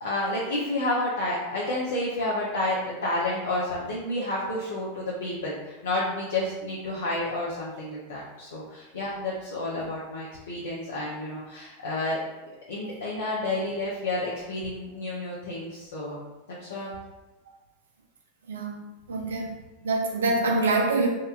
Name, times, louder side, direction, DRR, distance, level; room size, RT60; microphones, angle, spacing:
voice 1, 0.0-12.2 12.7-16.2 16.6-16.9, left 2 dB, 75° left, -6 dB, 0.5 m, -30 dB
voice 2, 18.5-19.6 19.8-21.1, right 2 dB, 75° right, 1 dB, 0.5 m, -25 dB
2.9 x 2.2 x 2.3 m, 1.0 s
figure-of-eight pair, 90°, 0 cm